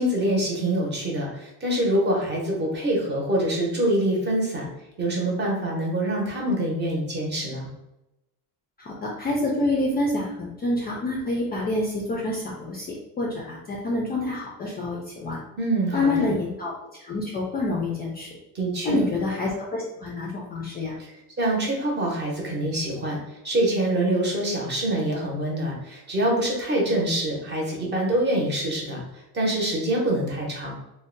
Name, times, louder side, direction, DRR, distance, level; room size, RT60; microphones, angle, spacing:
voice 1, 0.0-4.7 5.0-7.7 15.6-16.3 18.5-19.0 21.0-23.2 23.4-29.0 29.3-30.7, right 1 dB, 25° right, -2 dB, 0.8 m, -25 dB
voice 2, 8.9-15.4 15.9-16.7 17.0-18.3 18.8-20.9, left 2 dB, 25° left, -3 dB, 0.3 m, -27 dB
2.5 x 2.1 x 3.8 m, 0.92 s
cardioid pair, 165°, 39 cm